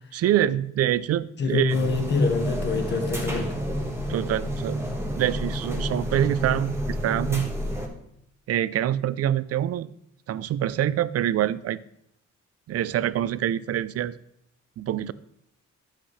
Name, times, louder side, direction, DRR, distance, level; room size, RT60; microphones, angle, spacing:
voice 1, 0.1-1.8 4.1-4.8 5.2-7.5 8.5-9.9 10.3-11.8 12.7-14.2 14.8-15.1, right 11 dB, 55° right, 17 dB, 0.5 m, -25 dB
voice 2, 1.4-3.5, left 4 dB, 40° left, 5 dB, 1.4 m, -25 dB
sound 1, 1.7-7.9, equal, 10° right, 1.5 m, -30 dB
11.5 x 7.9 x 3.2 m, 0.76 s
cardioid pair, 150°, 29 cm